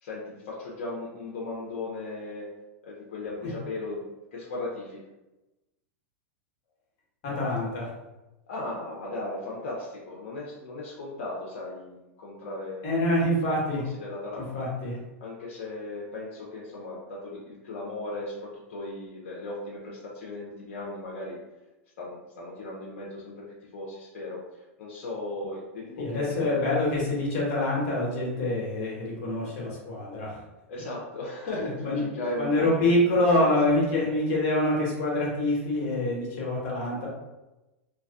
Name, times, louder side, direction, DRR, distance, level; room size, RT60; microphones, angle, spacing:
voice 1, 0.0-2.5 2.8-4.0 4.3-5.0 8.5-13.1 13.5-13.6 14.0-14.5 15.2-21.4 22.0-23.5 23.7-26.7 30.7-32.9 33.1-33.5, left 2 dB, 70° left, -5 dB, 0.6 m, -37 dB
voice 2, 7.2-7.9 12.8-13.8 14.4-15.0 26.0-30.4 31.6-32.0 32.4-37.1, left 1 dB, 55° left, -4 dB, 1.1 m, -26 dB
2.5 x 2.2 x 2.4 m, 1.0 s
hypercardioid pair, 110°, 7 cm